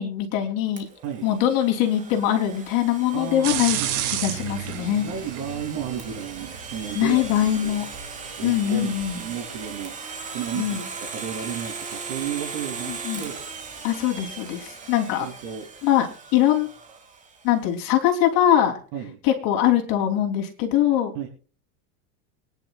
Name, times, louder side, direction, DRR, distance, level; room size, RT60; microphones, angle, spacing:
voice 1, 0.0-0.9 1.2-3.8 4.2-5.1 7.0-7.9 8.4-9.2 10.5-10.8 12.9-13.2 13.8-15.3 15.8-16.1 16.3-16.7 17.4-18.8 19.2-21.1, left 11 dB, 50° left, 2 dB, 3.6 m, -22 dB
Domestic sounds home sounds, 0.8-17.5, right 5 dB, 15° right, 2.4 m, -39 dB
voice 2, 3.1-3.9 5.0-7.3 7.6-7.8 8.4-9.9 10.3-13.5 15.2-15.7 18.9-19.2 21.1-21.3, right 8 dB, 60° right, 1 dB, 3.2 m, -33 dB
sound 1, 3.4-9.7, right 11 dB, 85° right, 2.6 m, -33 dB
24.5 x 10.5 x 2.4 m, 0.38 s
cardioid pair, 160°, 42 cm